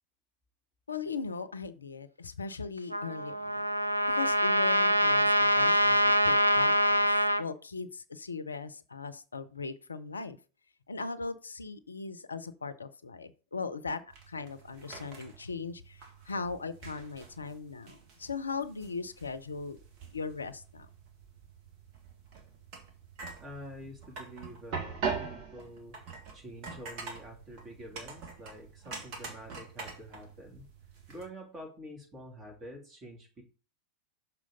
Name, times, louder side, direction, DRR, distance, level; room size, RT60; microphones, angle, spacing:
voice 1, 0.9-3.6 4.1-10.4 10.9-19.8 20.1-20.9, left 4 dB, 75° left, 14 dB, 0.5 m, -39 dB
Trumpet, 2.9-7.4, equal, 85° right, 0.5 m, -25 dB
sound 1, 14.1-31.3, right 5 dB, 40° right, 1.8 m, -43 dB
voice 2, 23.4-26.0 26.3-30.7 31.1-33.4, equal, 25° right, 1 dB, 3.1 m, -47 dB
6.2 x 4.4 x 5.4 m, 0.35 s
figure-of-eight pair, 90°, 0 cm